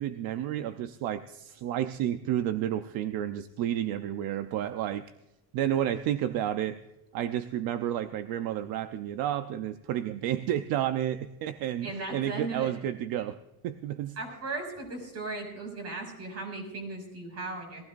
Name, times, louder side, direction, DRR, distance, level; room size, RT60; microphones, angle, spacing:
voice 1, 0.0-5.1 5.5-6.8 7.1-13.4 13.6-14.2, right 11 dB, 75° right, 10 dB, 0.8 m, -31 dB
voice 2, 11.8-12.7 14.2-17.8, right 3 dB, 45° right, 3 dB, 6.2 m, -37 dB
21.0 x 15.5 x 2.6 m, 0.94 s
cardioid pair, 130°, 36 cm